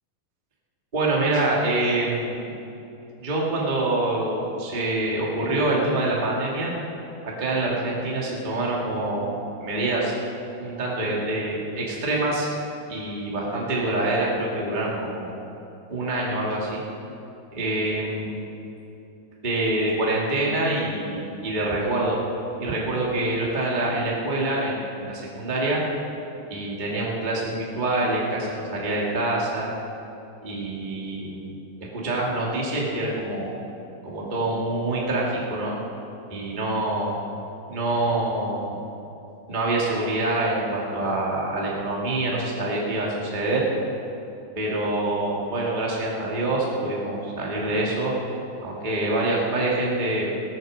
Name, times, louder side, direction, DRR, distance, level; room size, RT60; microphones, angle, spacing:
voice 1, 0.9-2.5 3.2-6.7 7.2-10.1 10.6-12.5 12.9-15.3 15.9-16.8 17.5-18.4 19.4-22.2 22.6-25.8 26.5-29.7 30.4-31.5 31.8-33.5 34.0-35.7 36.3-37.2 37.7-38.8 39.5-43.7 44.5-48.1 48.6-50.2, right 2 dB, 65° right, -4 dB, 0.4 m, -26 dB
19.5 x 8.9 x 6.4 m, 2.8 s
omnidirectional pair, 5.2 m